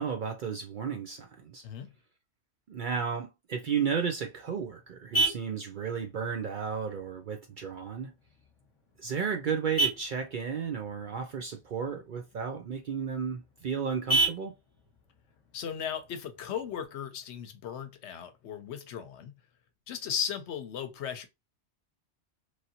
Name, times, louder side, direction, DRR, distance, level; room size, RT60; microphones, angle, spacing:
voice 1, 0.0-1.6 2.7-8.1 9.0-14.5, right 6 dB, 60° right, 0.5 m, -33 dB
Vehicle horn car horn honking, 3.9-16.9, right 3 dB, 25° left, 1.1 m, -36 dB
voice 2, 15.5-19.3 19.9-21.3, left 8 dB, 70° left, 0.9 m, -36 dB
3.1 x 2.6 x 2.7 m
omnidirectional pair, 1.2 m